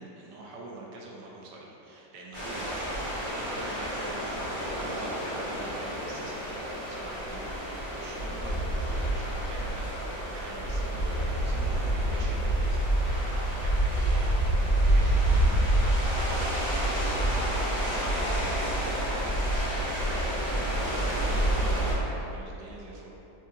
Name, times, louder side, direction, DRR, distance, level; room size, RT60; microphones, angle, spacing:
voice 1, 0.0-12.9 13.1-20.2 20.7-23.2, right 2 dB, 85° right, -2 dB, 1.2 m, -45 dB
sound 1, 2.3-21.9, right 1 dB, 30° left, 1.7 m, -28 dB
4.0 x 2.7 x 2.5 m, 2.9 s
omnidirectional pair, 1.8 m